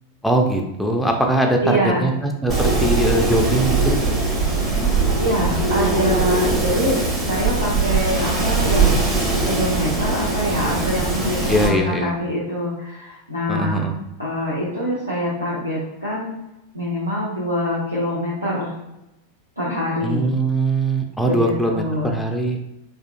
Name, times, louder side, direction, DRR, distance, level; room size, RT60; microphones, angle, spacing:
voice 1, 0.2-4.0 11.5-12.1 13.5-14.0 20.0-22.6, right 1 dB, ahead, 2 dB, 0.4 m, -21 dB
voice 2, 1.6-2.1 5.2-9.1 9.4-13.9 14.2-16.3 16.7-18.8 19.6-20.3 21.2-22.1, equal, 90° right, -10 dB, 0.7 m, -25 dB
Wind, 2.5-11.7, right 3 dB, 25° right, 0.9 m, -20 dB
3.6 x 2.3 x 2.5 m, 0.91 s
figure-of-eight pair, 90°, 0 cm